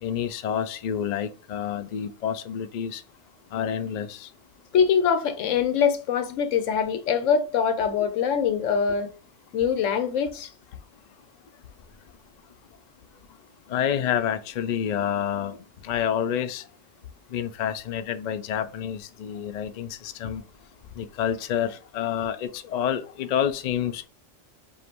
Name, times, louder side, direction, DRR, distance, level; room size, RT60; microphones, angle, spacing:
voice 1, 0.0-3.0 3.5-4.3 13.7-15.6 15.8-16.6 17.3-20.4 21.0-24.1, left 9 dB, 70° left, 0.4 m, -28 dB
voice 2, 4.7-9.1 9.5-10.5, left 7 dB, 85° left, 1.0 m, -23 dB
5.1 x 2.6 x 2.9 m
omnidirectional pair, 1.3 m